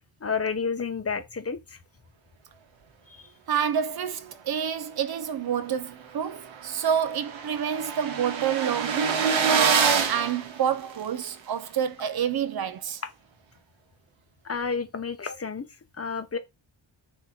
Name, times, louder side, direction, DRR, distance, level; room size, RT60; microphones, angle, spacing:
voice 1, 0.2-1.8 3.2-3.3 14.4-15.6 16.0-16.4, left 5 dB, 30° left, 0.7 m, -30 dB
voice 2, 3.5-13.0, right 8 dB, 55° right, 0.5 m, -28 dB
sound 1, 5.7-5.8 6.1-6.2 6.4-11.3, right 6 dB, 85° right, 1.0 m, -26 dB
4.4 x 2.8 x 3.8 m
wide cardioid pair, 105°, 46 cm